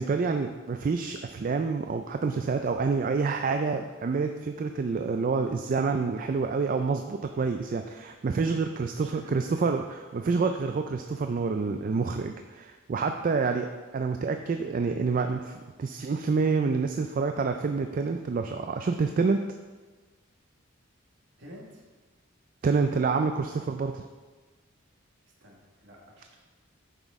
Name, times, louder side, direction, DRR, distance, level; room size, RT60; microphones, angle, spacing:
voice 1, 0.0-19.5 22.6-24.0, right 4 dB, 40° right, 6 dB, 0.3 m, -28 dB
voice 2, 9.0-9.4 13.1-13.3 21.4-21.8 25.4-26.4, equal, 60° right, -1 dB, 1.6 m, -48 dB
9.0 x 6.1 x 3.6 m, 1.3 s
head